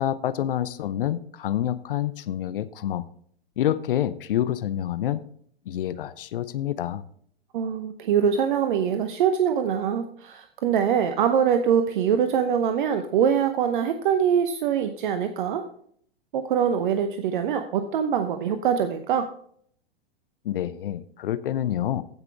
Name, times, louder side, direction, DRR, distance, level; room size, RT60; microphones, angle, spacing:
voice 1, 0.0-3.0 3.6-5.2 5.7-7.0 20.4-22.0, left 11 dB, 60° left, 16 dB, 0.7 m, -27 dB
voice 2, 7.5-15.6 16.3-19.3, right 8 dB, 55° right, 8 dB, 0.9 m, -23 dB
15.5 x 6.0 x 3.5 m, 0.63 s
figure-of-eight pair, 105°, 31 cm